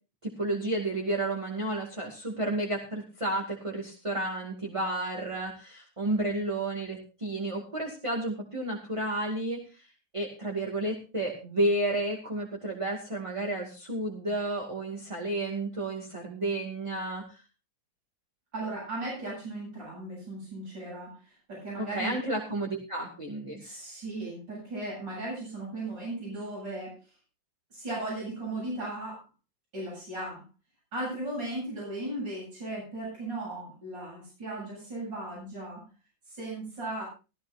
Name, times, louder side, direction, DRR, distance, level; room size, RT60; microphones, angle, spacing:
voice 1, 0.2-9.9 10.1-17.4 21.8-23.6, right 1 dB, 15° right, -1 dB, 2.3 m, -31 dB
voice 2, 18.5-22.2 23.6-27.0 27.7-29.2 29.7-30.4 30.9-35.8 36.3-37.0, right 2 dB, 75° right, -5 dB, 8.9 m, -36 dB
17.0 x 15.0 x 2.6 m, 0.32 s
omnidirectional pair, 2.0 m